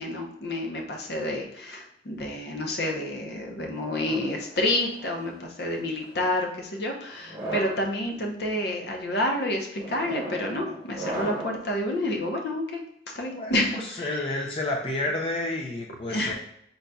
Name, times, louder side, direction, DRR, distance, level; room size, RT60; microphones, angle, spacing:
voice 1, 0.0-14.4 16.1-16.3, left 1 dB, 65° left, 1 dB, 0.7 m, -29 dB
sound 1, 3.8-5.2 6.0-6.3 7.2-7.8 8.5-8.8 9.8-11.7, right 1 dB, 25° right, 1.1 m, -37 dB
voice 2, 13.3-16.3, left 2 dB, 30° left, -1 dB, 0.4 m, -30 dB
5.2 x 3.9 x 2.3 m, 0.74 s
head